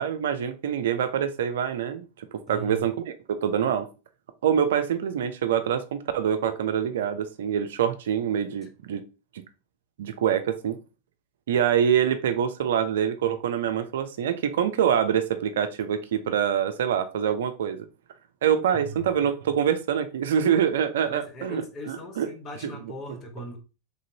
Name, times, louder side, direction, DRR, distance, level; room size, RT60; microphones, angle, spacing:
voice 1, 0.0-3.9 4.4-9.0 10.0-10.8 11.5-17.9 18.4-22.3, right 8 dB, 70° right, 0.4 m, -25 dB
voice 2, 2.5-2.8 18.7-19.1 21.1-23.6, equal, 30° left, 0.8 m, -39 dB
3.3 x 2.6 x 2.7 m
hypercardioid pair, 90°, 0 cm